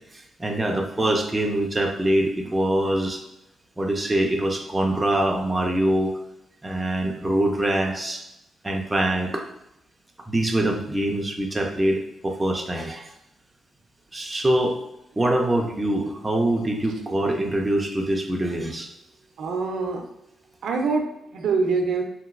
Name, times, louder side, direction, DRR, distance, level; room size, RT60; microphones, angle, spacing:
voice 1, 0.4-3.2 3.8-6.1 6.6-8.2 8.6-9.4 10.3-13.1 14.1-14.8 15.2-18.9, right 1 dB, 15° right, 2 dB, 0.3 m, -24 dB
voice 2, 19.4-20.1 20.6-22.0, right 4 dB, 75° right, 3 dB, 0.4 m, -25 dB
2.9 x 2.6 x 2.4 m, 0.87 s
cardioid pair, 140°, 0 cm